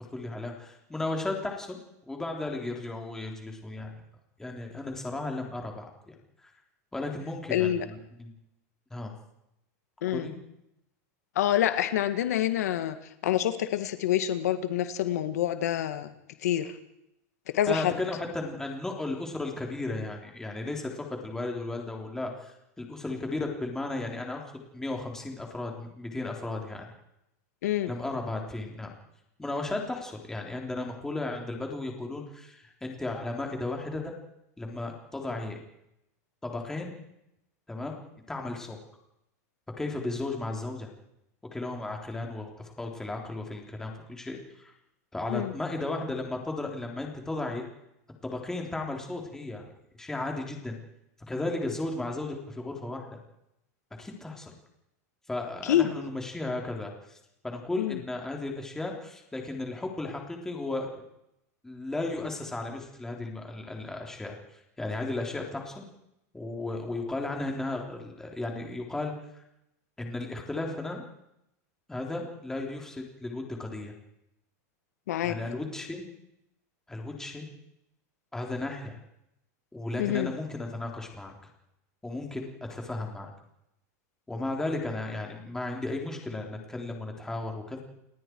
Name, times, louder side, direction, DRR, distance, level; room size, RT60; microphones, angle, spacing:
voice 1, 0.1-1.8 2.1-3.9 4.4-6.1 6.4-6.5 6.9-8.3 8.9-9.1 10.1-10.4 17.7-26.9 27.9-28.9 29.4-34.1 34.6-35.6 36.4-37.0 37.7-38.0 38.3-38.8 39.8-40.9 41.5-44.7 45.1-47.6 48.2-49.6 50.0-50.8 51.3-53.2 54.0-54.5 55.3-57.2 57.4-61.0 61.6-65.9 66.3-69.4 70.0-71.0 71.9-73.9 75.2-76.1 76.9-77.5 78.3-79.0 79.7-81.3 82.0-83.3 84.3-87.8, left 2 dB, 5° left, 1 dB, 3.6 m, -35 dB
voice 2, 7.5-7.9 10.0-10.3 11.4-13.0 13.2-16.1 16.4-16.7 17.5-17.9 27.6-27.9 45.3-45.5 55.6-55.9 57.8-58.0 75.1-75.4 80.0-80.3, left 11 dB, 85° left, 9 dB, 1.9 m, -27 dB
29.5 x 18.5 x 4.7 m, 0.82 s
supercardioid pair, 155°, 8 cm